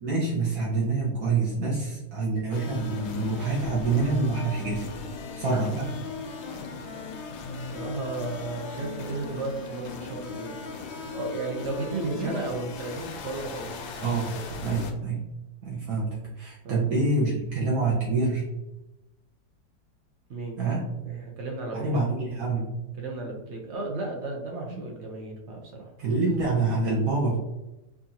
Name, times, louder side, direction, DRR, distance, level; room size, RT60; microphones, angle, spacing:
voice 1, 0.0-4.9 5.4-6.0 12.1-12.3 14.0-14.4 14.6-15.2 15.6-18.4 20.6-20.8 21.7-22.7 24.7-24.8 26.0-27.4, right 3 dB, 60° right, -5 dB, 1.2 m, -26 dB
sound 1, 2.5-14.9, left 4 dB, 85° left, 1.4 m, -38 dB
voice 2, 7.7-10.6 11.1-14.4 16.6-16.9 20.3-20.6 21.0-22.0 23.0-25.9, right 3 dB, 85° right, 0 dB, 0.6 m, -34 dB
4.6 x 2.6 x 2.7 m, 0.99 s
omnidirectional pair, 2.0 m